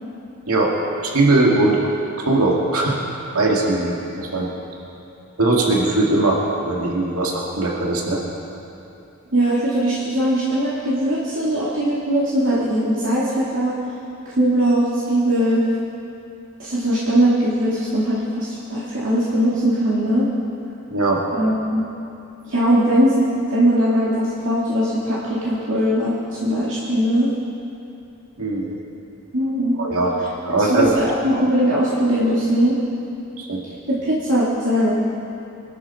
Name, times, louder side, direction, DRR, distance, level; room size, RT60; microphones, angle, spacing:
voice 1, 1.0-1.8 2.2-3.0 3.3-4.5 5.4-8.2 20.9-21.2 28.4-28.8 29.8-30.1 30.4-31.0 33.4-33.6, right 2 dB, 90° right, -2 dB, 2.1 m, -20 dB
voice 2, 9.3-13.7 14.4-15.6 16.6-20.3 21.3-21.8 22.4-27.3 29.3-29.8 30.6-32.8 33.9-34.9, equal, 60° right, -8 dB, 2.6 m, -20 dB
25.0 x 13.0 x 4.4 m, 2.8 s
head